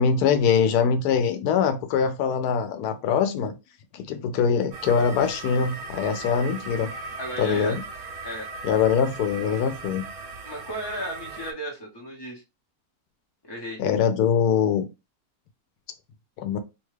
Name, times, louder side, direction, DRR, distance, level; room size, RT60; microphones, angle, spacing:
voice 1, 0.0-3.5 3.9-6.9 7.4-7.8 8.6-10.0 13.8-14.9 16.4-16.6, left 6 dB, 90° left, 1.1 m, -23 dB
sound 1, 4.7-11.5, right 3 dB, 65° right, 0.9 m, -38 dB
voice 2, 7.2-7.8 8.2-8.5 10.4-12.4 13.4-13.8, equal, 20° left, 0.9 m, -34 dB
2.8 x 2.3 x 3.2 m
omnidirectional pair, 1.6 m